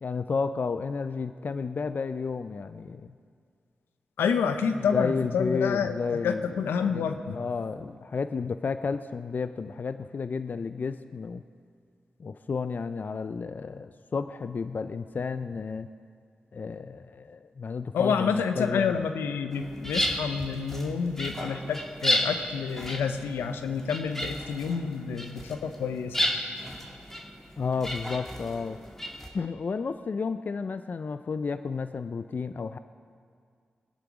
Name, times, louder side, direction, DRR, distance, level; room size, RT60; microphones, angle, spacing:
voice 1, 0.0-3.1 4.9-6.5 6.9-11.4 12.2-15.9 16.5-19.0 27.6-28.8 29.3-32.8, left 5 dB, 55° left, 11 dB, 0.5 m, -32 dB
voice 2, 4.2-5.9 6.2-7.4 17.9-26.2, left 6 dB, 90° left, 8 dB, 0.8 m, -28 dB
sound 1, 19.5-29.3, equal, 10° left, 2.2 m, -33 dB
21.0 x 10.5 x 4.9 m, 2.2 s
supercardioid pair, 45°, 4 cm